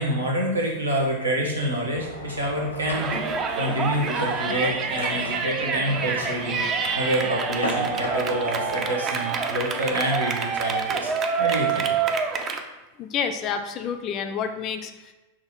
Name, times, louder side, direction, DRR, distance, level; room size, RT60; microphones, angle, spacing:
voice 1, 0.0-3.1 3.6-6.6 6.9-11.1 11.4-11.9, right 1 dB, 80° right, -1 dB, 0.9 m, -27 dB
sound 1, 1.9-8.9, left 2 dB, 75° left, 0.7 m, -35 dB
Yell, 2.9-12.6, right 6 dB, 30° right, 0.4 m, -27 dB
voice 2, 13.0-15.1, left 7 dB, 35° left, 7 dB, 0.4 m, -29 dB
5.8 x 2.5 x 3.0 m, 1.1 s
figure-of-eight pair, 90°, 0 cm